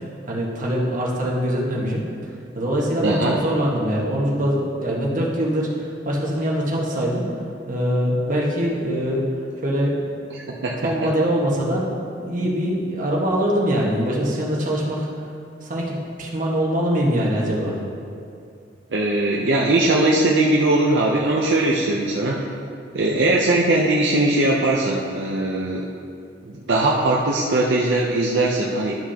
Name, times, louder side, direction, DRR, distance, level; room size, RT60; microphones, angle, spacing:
voice 1, 0.3-2.1 2.5-7.2 7.7-9.3 9.6-10.0 10.8-11.9 12.2-15.1 15.6-17.8, equal, 45° right, -3 dB, 1.4 m, -23 dB
voice 2, 3.0-3.4 10.3-10.8 18.9-22.4 22.9-25.9 26.5-29.0, right 2 dB, 70° right, -3 dB, 0.6 m, -20 dB
12.0 x 6.0 x 2.8 m, 2.4 s
head